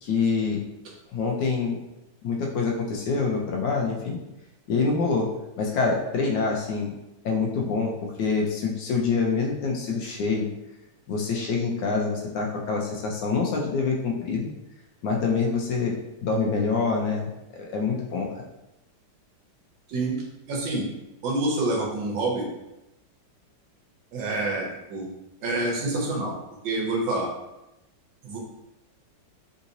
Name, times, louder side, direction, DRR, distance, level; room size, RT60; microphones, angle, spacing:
voice 1, 0.0-0.6 1.1-1.8 2.2-4.2 4.7-5.3 5.6-6.9 7.2-10.5 11.1-14.5 15.0-15.9 16.2-18.3, left 4 dB, 75° left, -1 dB, 1.2 m, -26 dB
voice 2, 19.9-20.8 21.2-22.5 24.1-25.1 25.4-26.4 26.6-27.3 28.2-28.4, right 2 dB, 75° right, -1 dB, 1.4 m, -27 dB
3.8 x 2.8 x 2.6 m, 0.92 s
omnidirectional pair, 2.1 m